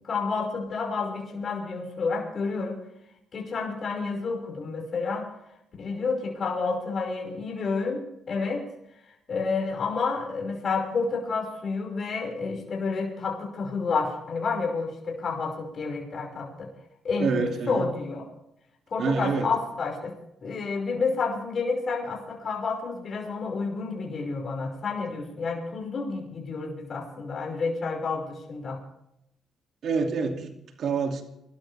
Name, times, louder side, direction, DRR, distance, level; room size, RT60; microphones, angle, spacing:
voice 1, 0.0-2.8 3.3-5.3 5.8-8.6 9.3-16.7 17.0-18.2 18.9-20.1 20.4-28.8, left 4 dB, 45° left, 0 dB, 5.6 m, -30 dB
voice 2, 17.2-17.9 19.0-19.5 29.8-31.2, right 5 dB, 65° right, 3 dB, 2.7 m, -27 dB
24.5 x 13.0 x 3.5 m, 0.82 s
cardioid pair, 90°, 0 cm